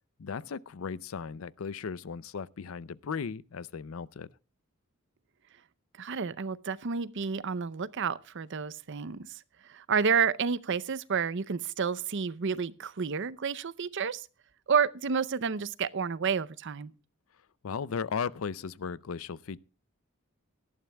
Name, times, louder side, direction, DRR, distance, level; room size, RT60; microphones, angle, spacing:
voice 1, 0.2-4.3 17.6-19.6, left 6 dB, 75° left, 0.5 m, -36 dB
voice 2, 6.0-14.3 14.7-16.9, right 6 dB, 60° right, 0.6 m, -30 dB
18.0 x 12.5 x 2.3 m
head